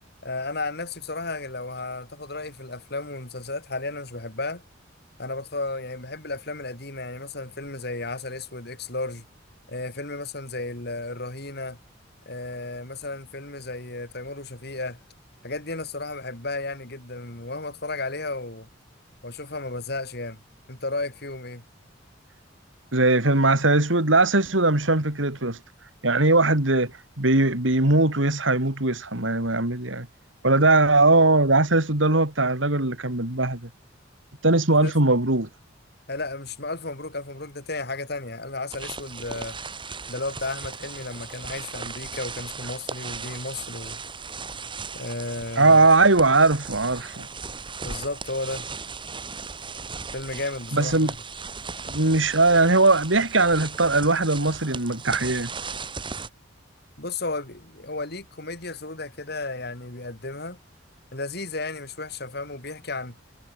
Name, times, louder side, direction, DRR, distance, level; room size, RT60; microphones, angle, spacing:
voice 1, 0.2-4.6 5.2-9.3 9.7-11.8 12.3-15.0 15.4-18.7 19.2-20.4 20.7-21.6 34.8-34.9 36.1-39.6 40.1-44.0 44.9-45.8 47.8-48.7 50.1-51.2 57.0-60.6 61.1-63.2, left 2 dB, 55° left, 5.6 m, -33 dB
voice 2, 22.9-25.6 26.0-26.9 27.2-30.1 30.4-33.7 34.4-35.5 45.6-47.3 50.7-51.1 51.9-55.5, right 2 dB, 80° right, 3.5 m, -20 dB
sound 1, 38.7-56.3, right 4 dB, 25° right, 4.9 m, -37 dB
head